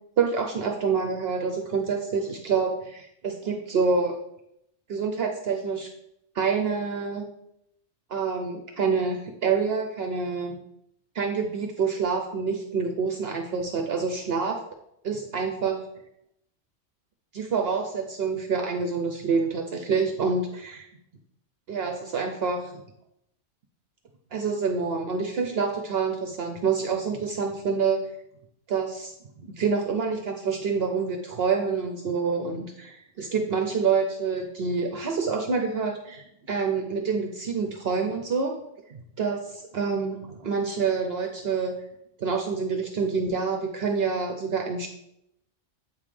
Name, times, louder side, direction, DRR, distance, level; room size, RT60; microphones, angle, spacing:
voice 1, 0.2-4.2 4.9-5.9 6.3-7.2 8.1-10.6 11.1-14.6 15.0-15.8 17.3-20.8 21.7-22.7 24.3-28.0 28.7-29.1 29.5-38.5 38.9-39.4 39.7-41.7 42.2-44.9, right 5 dB, 60° right, 3 dB, 0.8 m, -27 dB
8.1 x 3.6 x 4.9 m, 0.79 s
omnidirectional pair, 1.2 m